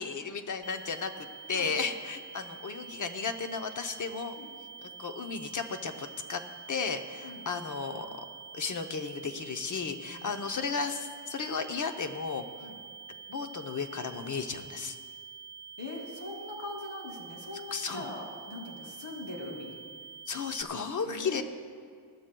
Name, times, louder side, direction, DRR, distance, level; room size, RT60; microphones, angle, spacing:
voice 1, 0.0-4.4 4.8-6.4 6.7-8.3 8.5-12.5 13.3-15.0 17.7-18.0 20.3-21.4, left 5 dB, 45° left, 7 dB, 0.8 m, -34 dB
sound 1, 0.6-20.6, right 6 dB, 25° right, 0.4 m, -47 dB
voice 2, 1.5-1.8 4.3-4.5 7.2-7.5 10.0-10.4 12.6-12.8 15.8-19.8 21.0-21.4, left 2 dB, 90° left, -1 dB, 2.6 m, -41 dB
20.0 x 13.5 x 2.3 m, 2.1 s
wide cardioid pair, 140°, 45 cm